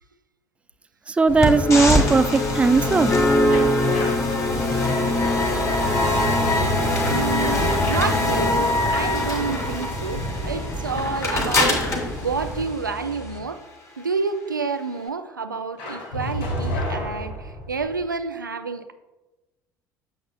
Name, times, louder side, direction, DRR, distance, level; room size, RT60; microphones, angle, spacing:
voice 1, 1.1-3.1, right 4 dB, 10° right, 13 dB, 0.3 m, -18 dB
sound 1, 1.3-12.7, equal, 80° left, 2.8 m, -33 dB
sound 2, 1.4-13.4, left 2 dB, 30° left, 2.6 m, -23 dB
sound 3, 3.5-10.3 15.8-18.0, equal, 60° left, 2.4 m, -31 dB
voice 2, 7.1-7.6 7.9-11.8 12.2-13.6 14.0-18.9, right 4 dB, 85° right, 10 dB, 0.4 m, -29 dB
9.7 x 7.2 x 2.3 m, 1.1 s
figure-of-eight pair, 60°, 10 cm